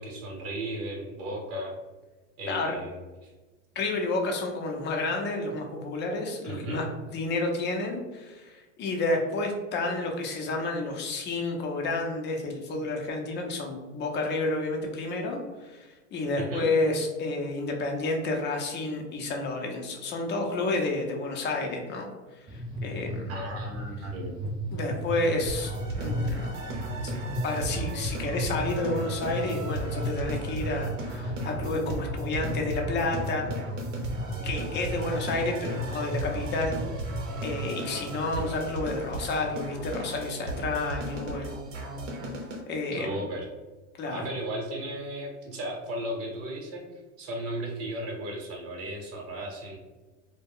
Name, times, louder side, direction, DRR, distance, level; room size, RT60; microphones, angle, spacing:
voice 1, 0.0-1.8 2.4-3.3 6.4-6.8 16.4-16.7 23.3-24.4 38.3-38.5 42.9-43.5 44.1-46.8 47.2-49.8, right 1 dB, 40° right, -1 dB, 1.0 m, -35 dB
voice 2, 3.8-22.0 22.5-23.3 24.2-24.3 24.7-26.5 27.4-33.5 34.4-36.8 37.4-41.5 42.7-43.2 44.0-44.2, left 2 dB, 30° left, 1 dB, 0.6 m, -30 dB
sound 1, 22.5-37.6, equal, 15° right, 0.4 m, -35 dB
sound 2, 25.5-42.6, right 2 dB, 75° right, 0.8 m, -37 dB
2.2 x 2.2 x 3.5 m, 1.2 s
hypercardioid pair, 105°, 38 cm